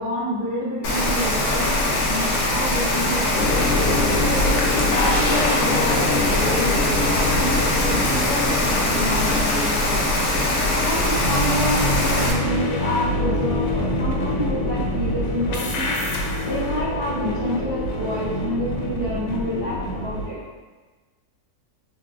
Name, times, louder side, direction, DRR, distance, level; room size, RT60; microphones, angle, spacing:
voice 1, 0.0-4.4 4.9-10.0 10.8-15.9 16.4-20.4, equal, 30° right, -11 dB, 0.5 m, -28 dB
Rain, 0.8-12.3, left 1 dB, 65° left, 0.7 m, -22 dB
sound 1, 3.3-20.3, left 1 dB, 85° left, 1.2 m, -25 dB
3.8 x 2.4 x 2.4 m, 1.3 s
omnidirectional pair, 1.8 m